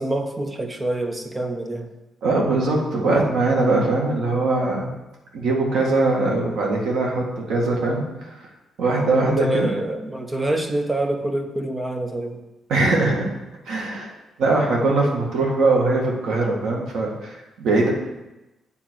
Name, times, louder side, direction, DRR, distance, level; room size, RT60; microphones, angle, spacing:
voice 1, 0.0-1.9 9.1-12.4, right 1 dB, 15° right, 5 dB, 0.7 m, -26 dB
voice 2, 2.2-4.9 5.3-8.4 8.8-9.7 12.7-13.3 13.7-14.1 14.4-17.9, right 2 dB, 75° right, -1 dB, 1.8 m, -21 dB
9.0 x 3.9 x 6.2 m, 1.0 s
cardioid pair, 170°, 0 cm